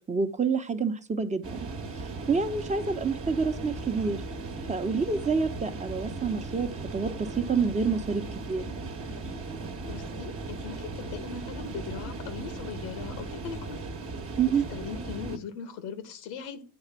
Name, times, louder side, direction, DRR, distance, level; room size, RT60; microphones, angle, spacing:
voice 1, 0.1-1.7 2.0-4.2 4.7-8.2 8.5-8.6 14.4-14.7, right 5 dB, 15° right, 7 dB, 1.0 m, -28 dB
sound 1, 1.4-15.4, right 3 dB, 35° right, 1.2 m, -37 dB
voice 2, 9.9-13.9 14.7-16.6, left 7 dB, 80° left, 10 dB, 1.3 m, -39 dB
8.8 x 3.3 x 5.9 m, 0.38 s
supercardioid pair, 75°, 41 cm